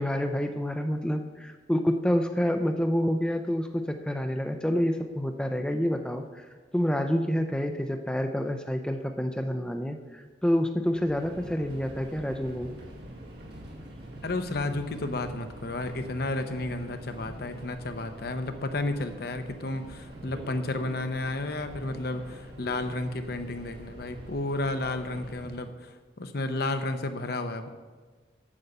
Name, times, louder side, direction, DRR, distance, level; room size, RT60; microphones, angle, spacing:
voice 1, 0.0-6.5 6.7-12.7, equal, 5° left, 5 dB, 0.4 m, -28 dB
Subway metro underground, 10.9-25.7, right 1 dB, 60° right, 1.9 m, -45 dB
voice 2, 14.2-27.7, left 2 dB, 55° left, 8 dB, 0.8 m, -32 dB
8.7 x 6.9 x 6.6 m, 1.4 s
head